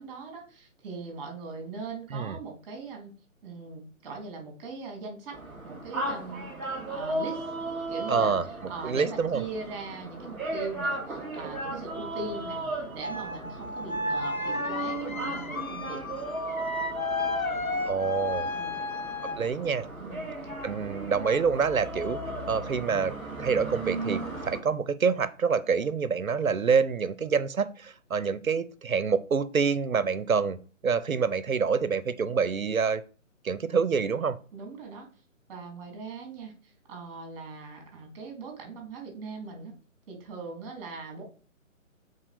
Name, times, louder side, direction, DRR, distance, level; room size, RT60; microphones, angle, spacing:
voice 1, 0.0-3.1 3.4-5.4 5.6-6.5 6.9-7.5 7.9-16.0 18.5-18.8 20.0-20.3 34.5-35.1 35.5-39.7 40.1-41.2, right 4 dB, 20° right, 2 dB, 2.8 m, -40 dB
voice 2, 2.1-2.4 8.1-9.4 17.8-18.5 19.2-19.9 20.6-22.2 22.5-33.0 33.4-34.4, right 5 dB, 80° right, 15 dB, 0.8 m, -27 dB
sound 1, 5.3-24.6, right 2 dB, 5° right, 0.7 m, -36 dB
sound 2, 13.0-19.5, left 2 dB, 85° left, 1.2 m, -33 dB
7.3 x 4.2 x 5.0 m, 0.40 s
figure-of-eight pair, 145°, 41 cm